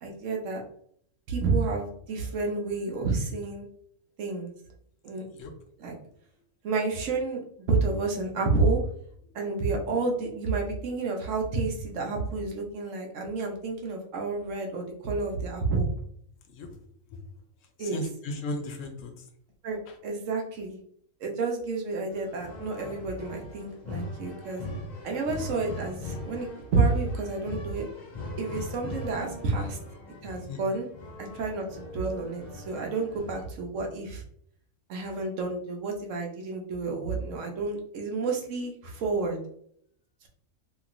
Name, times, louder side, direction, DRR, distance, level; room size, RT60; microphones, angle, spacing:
voice 1, 0.0-0.6 1.3-3.7 4.2-4.5 5.0-5.2 5.8-5.9 6.6-8.8 9.3-15.9 17.8-18.0 19.6-19.8 20.0-20.8 21.2-24.6 25.0-27.9 28.4-29.8 30.2-30.9 31.2-34.2 34.9-39.4, right 3 dB, 70° right, 1 dB, 1.0 m, -30 dB
voice 2, 17.8-19.1 30.5-30.6, left 1 dB, 70° left, 5 dB, 0.9 m, -35 dB
sound 1, 22.1-33.5, left 2 dB, 55° left, 0.5 m, -40 dB
3.0 x 2.7 x 2.4 m, 0.65 s
omnidirectional pair, 1.4 m